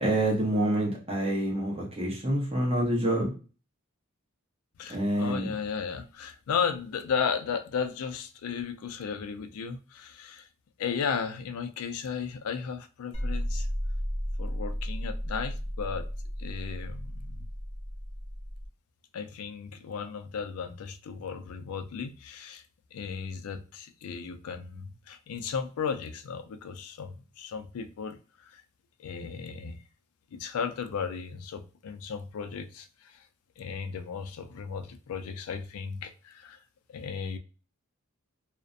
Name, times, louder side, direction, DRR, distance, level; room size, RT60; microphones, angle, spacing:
voice 1, 0.0-3.3 4.9-5.5, right 1 dB, 30° right, 0.8 m, -27 dB
voice 2, 4.8-10.5 10.8-13.7 14.4-16.1 16.4-17.5 19.1-22.6 22.9-28.2 28.4-28.6 29.0-29.8 30.3-33.2 33.6-36.6 36.9-37.4, left 6 dB, 85° left, 0.4 m, -35 dB
sound 1, 13.1-18.7, equal, 25° left, 0.6 m, -34 dB
2.4 x 2.1 x 2.5 m
head